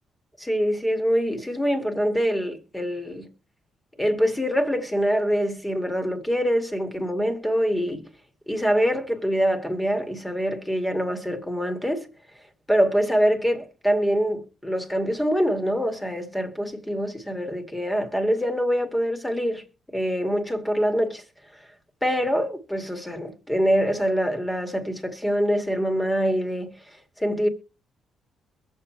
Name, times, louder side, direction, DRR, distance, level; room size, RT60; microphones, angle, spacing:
voice 1, 0.4-3.3 4.0-8.1 8.5-12.1 12.7-19.6 19.9-21.2 22.0-26.7 27.2-27.5, equal, 10° left, 2.2 m, -24 dB
22.0 x 7.5 x 3.2 m
cardioid pair, 90°, 0 cm